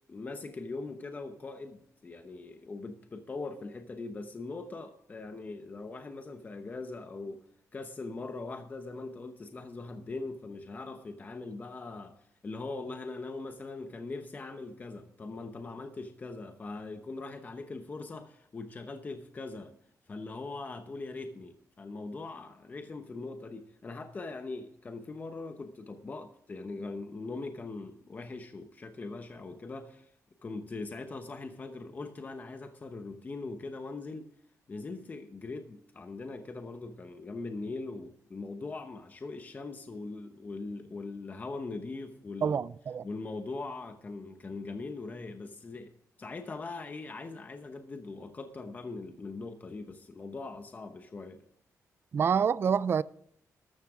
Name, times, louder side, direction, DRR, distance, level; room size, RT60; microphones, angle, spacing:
voice 1, 0.1-7.4 7.7-19.7 20.1-30.1 30.4-34.3 34.7-42.6 43.0-45.9 46.2-51.4, left 3 dB, 30° left, 0.9 m, -41 dB
voice 2, 42.4-43.0 52.1-53.0, right 7 dB, 40° right, 0.4 m, -27 dB
13.0 x 13.0 x 3.6 m
wide cardioid pair, 150°, 6 cm